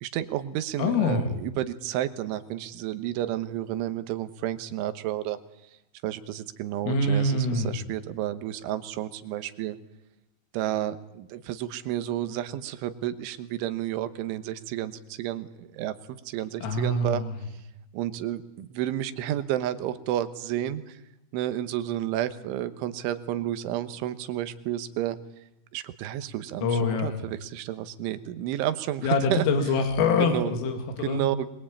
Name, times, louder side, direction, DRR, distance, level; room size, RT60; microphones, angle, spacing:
voice 1, 0.0-5.7 6.0-9.8 10.5-17.2 17.9-21.0 21.3-25.2 25.7-29.5 30.2-30.5 31.0-31.5, right 12 dB, 80° right, 12 dB, 3.5 m, -31 dB
voice 2, 0.8-1.3 6.9-7.7 16.6-17.3 26.6-27.2 29.0-31.2, left 3 dB, 85° left, 6 dB, 4.9 m, -25 dB
24.5 x 21.0 x 8.8 m, 0.87 s
omnidirectional pair, 5.6 m